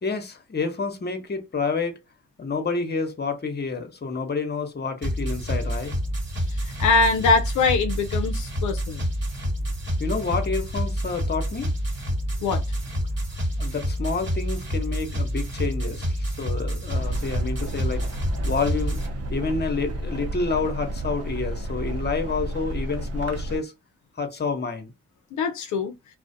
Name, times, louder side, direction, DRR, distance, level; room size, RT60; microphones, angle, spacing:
voice 1, 0.0-2.0 2.4-5.9 10.0-11.7 13.6-18.0 18.4-19.0 19.3-23.7 24.2-24.9, left 4 dB, 35° left, 0.8 m, -29 dB
sound 1, 5.0-19.1, equal, 40° right, 1.1 m, -28 dB
voice 2, 6.5-9.1 12.4-12.6 25.4-25.9, left 4 dB, 75° left, 0.4 m, -23 dB
sound 2, 16.9-23.6, right 1 dB, 55° right, 0.6 m, -31 dB
2.4 x 2.1 x 2.6 m
supercardioid pair, 50°, 30 cm